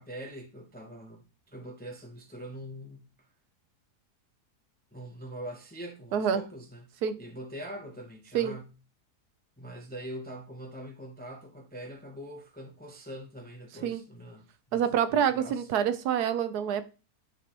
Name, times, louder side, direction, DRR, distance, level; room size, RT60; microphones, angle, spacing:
voice 1, 0.0-3.3 4.9-8.7 9.6-15.7, equal, 10° left, 0.5 m, -43 dB
voice 2, 14.7-16.8, right 8 dB, 80° right, 1.2 m, -27 dB
9.1 x 3.8 x 2.9 m
omnidirectional pair, 1.7 m